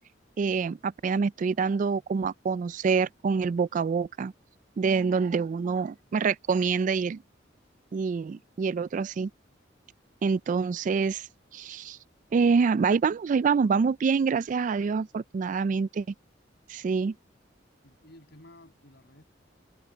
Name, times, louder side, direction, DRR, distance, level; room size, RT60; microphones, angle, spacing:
voice 1, 0.4-4.3 4.8-7.2 7.9-9.3 10.2-11.3 11.5-12.0 12.3-16.1 16.7-17.1, right 5 dB, 45° right, 0.3 m, -26 dB
voice 2, 17.8-19.2, left 1 dB, 60° left, 7.2 m, -53 dB
head